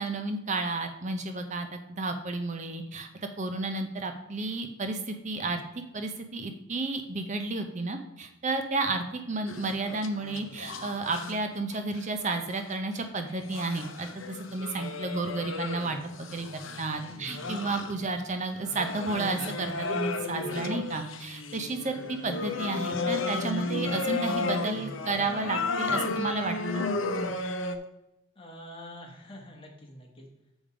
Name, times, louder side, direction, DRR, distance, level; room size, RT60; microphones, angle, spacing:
voice 1, 0.0-3.1 3.4-5.6 5.9-26.9, right 3 dB, 35° right, 6 dB, 0.6 m, -32 dB
sound 1, 9.5-11.4 11.7-12.6 13.3-18.2 18.6-27.8, left 3 dB, 70° left, 0.7 m, -33 dB
voice 2, 17.0-17.5 28.3-30.3, left 1 dB, 25° left, 1 dB, 1.3 m, -46 dB
7.1 x 5.2 x 4.9 m, 0.90 s
head